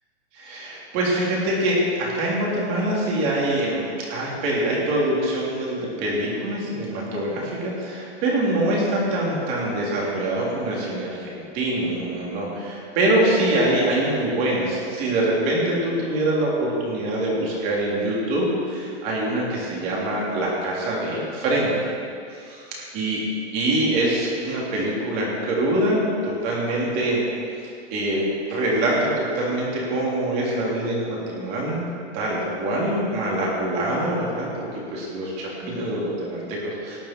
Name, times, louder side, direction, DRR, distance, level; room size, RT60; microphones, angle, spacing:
voice 1, 0.3-21.9 22.3-22.4 22.9-23.2 23.5-27.2 27.6-31.8 32.1-37.0, right 1 dB, 25° right, -4 dB, 3.1 m, -24 dB
18.0 x 8.9 x 4.5 m, 2.4 s
hypercardioid pair, 170°, 34 cm